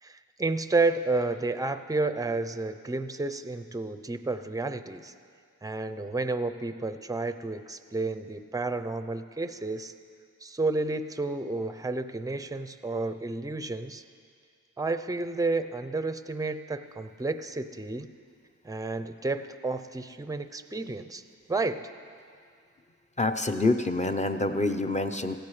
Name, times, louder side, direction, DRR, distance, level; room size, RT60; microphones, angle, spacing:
voice 1, 0.0-5.1 5.6-9.9 10.4-14.0 14.8-18.1 18.6-21.2 21.5-21.8, right 3 dB, 10° right, 10 dB, 0.6 m, -31 dB
voice 2, 23.2-25.4, left 2 dB, 20° left, 7 dB, 0.8 m, -26 dB
17.5 x 14.5 x 3.3 m, 2.2 s
cardioid pair, 60°, 34 cm